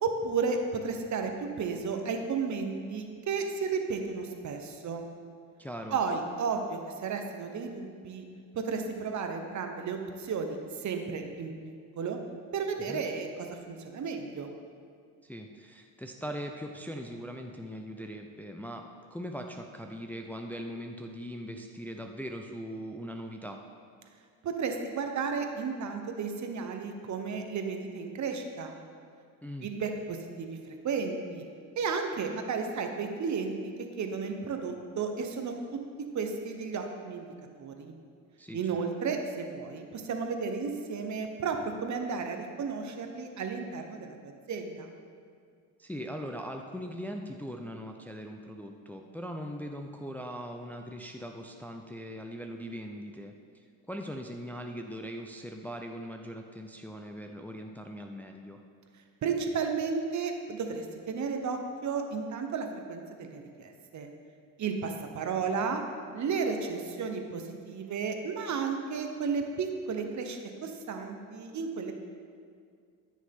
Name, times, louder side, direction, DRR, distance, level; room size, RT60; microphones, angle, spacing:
voice 1, 0.0-5.0 5.9-8.3 8.5-11.5 12.0-12.2 12.5-14.5 24.4-28.7 29.6-31.5 31.8-33.5 34.0-35.5 36.1-37.3 37.6-37.9 38.5-44.9 59.2-64.1 64.6-65.8 66.1-71.9, right 5 dB, 45° right, 5 dB, 1.1 m, -33 dB
voice 2, 5.6-6.0 12.9-13.0 15.2-18.8 19.1-23.6 29.4-29.7 38.4-38.8 45.8-58.6, equal, 5° left, 3 dB, 0.6 m, -40 dB
13.5 x 6.3 x 3.7 m, 2.2 s
supercardioid pair, 85°, 38 cm